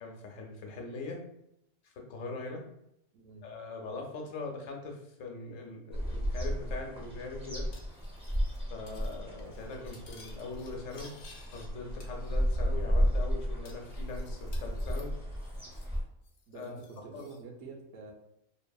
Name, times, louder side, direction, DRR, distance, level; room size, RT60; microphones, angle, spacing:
voice 1, 0.0-1.2 2.1-2.6 3.4-7.6 8.7-11.1 11.5-15.1 16.5-16.8 17.1-17.2, left 3 dB, 90° left, 2 dB, 1.0 m, -41 dB
voice 2, 3.1-3.4 16.5-18.1, right 4 dB, 85° right, 0 dB, 1.0 m, -47 dB
sound 1, 5.9-16.0, equal, 10° right, 0.3 m, -33 dB
Cutlery silverware, 7.7-8.6 8.9-9.1 9.4-11.7 12.0-12.7 13.0-13.1 13.7-16.0 16.2-17.4, left 4 dB, 70° left, 0.8 m, -57 dB
2.9 x 2.6 x 2.2 m, 0.79 s
omnidirectional pair, 1.3 m